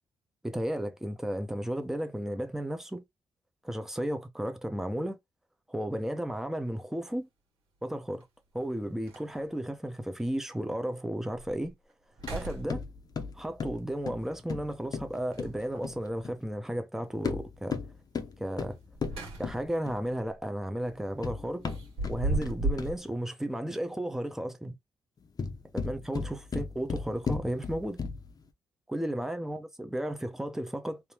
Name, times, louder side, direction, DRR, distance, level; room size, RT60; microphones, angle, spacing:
voice 1, 0.4-3.0 3.6-5.2 5.7-7.3 7.8-8.3 8.5-11.7 12.3-12.8 13.4-17.8 18.4-18.8 19.4-21.7 22.1-24.7 25.7-28.0 28.9-31.0, right 1 dB, 5° right, 0.7 m, -34 dB
sound 1, 6.3-6.5 8.2-8.3 8.7-8.8 9.0-9.6 10.2-10.3 10.8-10.9 11.3-11.7 12.1-13.2 15.3-16.0 18.7-19.8 20.1-20.4 21.6-23.0, right 2 dB, 85° right, 1.7 m, -35 dB
sound 2, 12.2-16.4 17.1-20.2 20.9-23.1 25.2-28.4, left 5 dB, 45° left, 0.8 m, -37 dB
3.5 x 2.8 x 2.9 m
cardioid pair, 80°, 9 cm